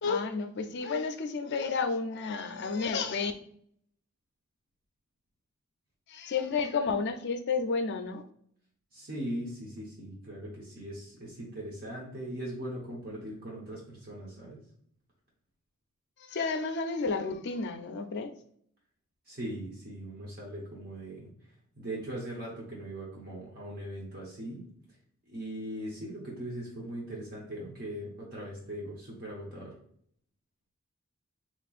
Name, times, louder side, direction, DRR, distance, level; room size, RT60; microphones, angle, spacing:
voice 1, 0.0-3.3 6.1-8.2 16.2-18.3, left 4 dB, 50° left, 0.4 m, -31 dB
voice 2, 8.9-14.6 19.3-21.3 21.8-24.6 25.3-29.7, right 1 dB, 45° right, 0.9 m, -40 dB
4.2 x 2.9 x 2.4 m
head